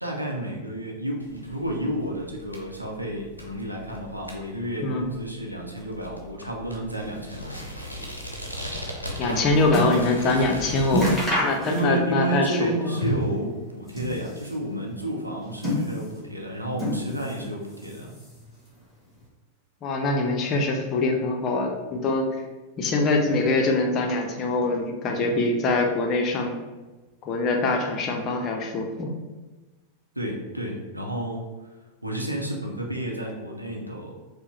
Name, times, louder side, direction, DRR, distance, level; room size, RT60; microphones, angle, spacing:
voice 1, 0.0-7.7 11.7-18.1 30.2-31.8 32.0-34.1, right 1 dB, 85° right, 0 dB, 0.6 m, -31 dB
sound 1, 1.2-11.2, left 1 dB, 90° left, 0.6 m, -38 dB
sound 2, 9.0-10.1 10.5-10.6 10.9-12.2 12.5-13.4 13.8-14.6 15.3-16.3 16.7-17.5 17.7-18.5 19.2-19.3, equal, 10° left, 1.5 m, -28 dB
voice 2, 9.2-13.0 19.8-22.4 22.8-26.5 27.2-29.1, left 2 dB, 35° left, 2 dB, 0.6 m, -24 dB
4.5 x 2.1 x 3.1 m, 1.2 s
figure-of-eight pair, 90°, 0 cm